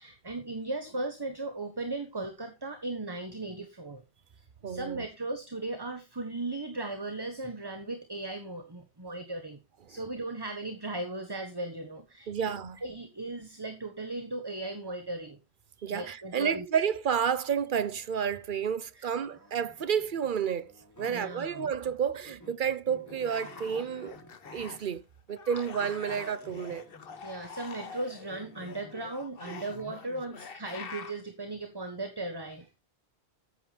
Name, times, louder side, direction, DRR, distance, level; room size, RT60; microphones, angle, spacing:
voice 1, 0.0-4.0 4.7-9.6 9.9-12.3 12.8-15.4 15.9-16.6 19.0-19.1 21.1-21.7 27.2-32.8, right 2 dB, 20° right, 1.4 m, -37 dB
voice 2, 4.6-5.0 12.3-12.8 15.8-20.7 21.0-24.2 24.5-25.0 25.3-26.8 29.5-29.6, right 7 dB, 50° right, 1.0 m, -30 dB
sound 1, 19.1-22.0 22.2-24.9 25.8-27.4 27.8-30.3, left 1 dB, 15° left, 1.4 m, -53 dB
sound 2, 23.1-25.0 25.3-31.2, left 6 dB, 60° left, 1.2 m, -46 dB
14.0 x 8.3 x 3.4 m
omnidirectional pair, 1.1 m